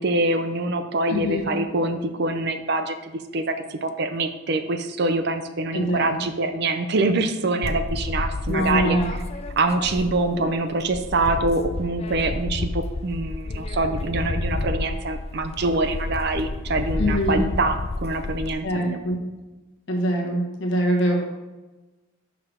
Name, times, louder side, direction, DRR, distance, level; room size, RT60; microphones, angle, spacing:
voice 1, 0.0-9.0 9.6-19.0, right 2 dB, 50° right, 9 dB, 0.5 m, -25 dB
voice 2, 1.1-1.4 5.7-6.1 8.5-9.1 10.3-10.5 17.0-17.4 18.6-19.2 19.9-21.2, equal, 55° left, 0 dB, 1.4 m, -23 dB
sound 1, 7.6-10.5 10.8-18.5, left 2 dB, 30° left, 0.3 m, -30 dB
5.8 x 4.8 x 5.0 m, 1.1 s
head